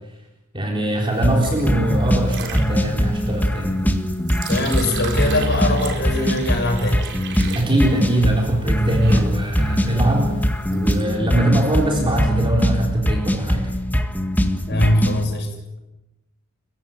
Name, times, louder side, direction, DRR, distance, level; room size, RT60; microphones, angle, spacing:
voice 1, 0.5-3.8 7.5-13.7, right 1 dB, 25° right, 0 dB, 3.8 m, -22 dB
sound 1, 1.1-11.0, right 5 dB, 55° right, 3.9 m, -36 dB
sound 2, 1.2-15.2, equal, 10° left, 1.8 m, -22 dB
voice 2, 4.5-7.1 14.7-15.5, left 1 dB, 50° left, 2 dB, 6.7 m, -21 dB
30.0 x 16.0 x 9.2 m, 0.96 s
head